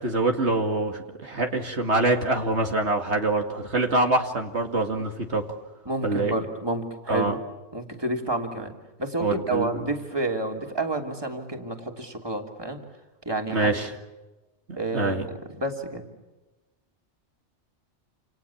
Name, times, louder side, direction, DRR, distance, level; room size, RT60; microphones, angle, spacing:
voice 1, 0.0-5.5 6.0-6.3 7.1-7.3 9.2-9.8 13.5-13.9 14.9-15.3, right 2 dB, 65° right, 3 dB, 2.6 m, -25 dB
voice 2, 5.8-7.4 7.7-8.7 9.0-12.8 13.2-13.8 14.8-16.0, right 2 dB, 20° right, 3 dB, 3.2 m, -30 dB
29.0 x 28.5 x 7.2 m, 1.1 s
omnidirectional pair, 1.2 m